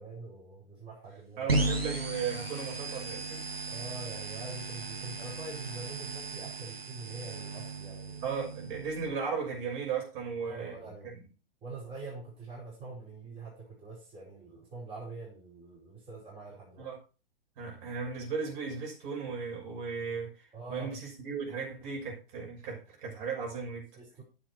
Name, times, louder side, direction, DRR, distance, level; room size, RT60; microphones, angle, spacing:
voice 1, 0.0-1.6 3.7-8.2 10.4-11.1 11.6-16.9 20.5-20.9 24.0-24.2, right 3 dB, 20° right, 5.0 m, -44 dB
voice 2, 1.4-3.5 8.2-11.2 16.8-17.0 17.6-23.9, right 5 dB, 40° right, 6.4 m, -36 dB
sound 1, 1.5-9.1, right 2 dB, 85° right, 2.7 m, -35 dB
10.5 x 7.7 x 4.6 m
figure-of-eight pair, 110°, 29 cm